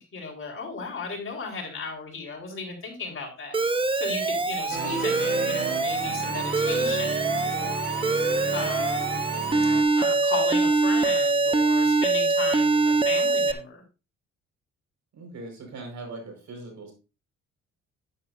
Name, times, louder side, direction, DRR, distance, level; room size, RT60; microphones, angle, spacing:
voice 1, 0.0-3.6 3.9-8.0 8.5-9.4 10.0-13.8, left 4 dB, 45° left, 0 dB, 4.4 m, -35 dB
Alarm, 3.5-13.5, right 3 dB, 15° right, 0.8 m, -24 dB
sound 1, 4.7-9.8, right 4 dB, 35° right, 1.7 m, -33 dB
voice 2, 15.1-16.9, right 2 dB, 65° right, 3 dB, 5.2 m, -41 dB
10.5 x 9.8 x 2.7 m, 0.30 s
cardioid pair, 90°, 30 cm